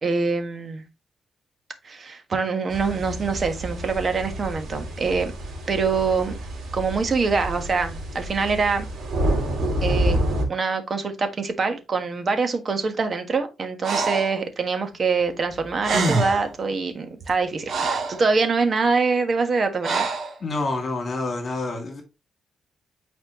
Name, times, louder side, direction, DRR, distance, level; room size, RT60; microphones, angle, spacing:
voice 1, 0.0-0.8 1.8-5.3 5.7-6.4 6.7-8.9 9.8-10.2 10.5-20.1, right 4 dB, 40° right, 1.3 m, -24 dB
sound 1, 2.7-10.4, right 1 dB, 75° right, 2.6 m, -28 dB
Breathing, 13.8-14.3 15.5-15.6 15.8-16.5 17.2-18.2 19.8-20.3, right 3 dB, 60° right, 1.7 m, -25 dB
voice 2, 20.4-22.0, left 2 dB, 40° left, 2.5 m, -27 dB
8.8 x 4.3 x 3.0 m
cardioid pair, 115°, 0 cm